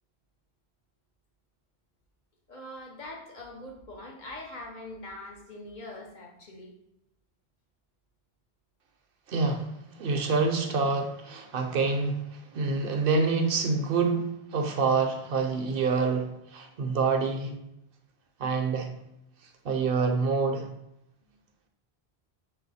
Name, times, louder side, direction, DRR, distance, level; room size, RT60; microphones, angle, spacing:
voice 1, 2.5-6.7, left 1 dB, 50° left, 1 dB, 0.8 m, -43 dB
voice 2, 9.3-17.5 18.4-18.9 19.6-20.7, right 4 dB, 65° right, 4 dB, 0.8 m, -27 dB
5.7 x 2.2 x 4.0 m, 0.84 s
omnidirectional pair, 1.0 m